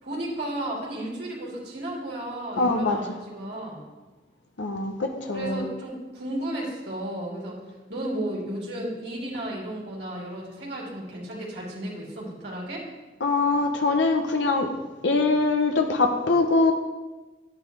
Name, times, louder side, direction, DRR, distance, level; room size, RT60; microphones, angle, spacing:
voice 1, 0.0-3.9 5.3-7.6 7.9-12.9, right 1 dB, 65° right, -5 dB, 3.0 m, -33 dB
voice 2, 2.6-3.0 4.6-5.6 13.2-14.7 15.0-16.7, left 3 dB, 85° left, 4 dB, 0.9 m, -23 dB
10.5 x 9.4 x 3.3 m, 1.2 s
head